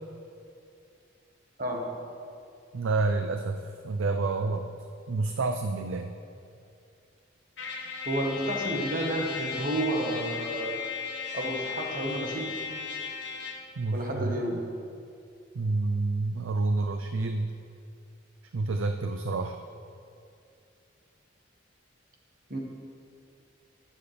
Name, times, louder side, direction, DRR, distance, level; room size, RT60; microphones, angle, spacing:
voice 1, 1.6-2.0 8.0-10.8 11.3-12.6 13.9-14.7 22.5-22.6, right 1 dB, 45° right, 1 dB, 1.4 m, -31 dB
voice 2, 2.7-4.6 5.1-6.1 13.8-14.6 15.5-17.5 18.5-19.6, right 3 dB, 85° right, 6 dB, 0.5 m, -29 dB
Trumpet, 7.6-13.7, left 6 dB, 60° left, 1.3 m, -36 dB
19.5 x 7.4 x 3.4 m, 2.5 s
head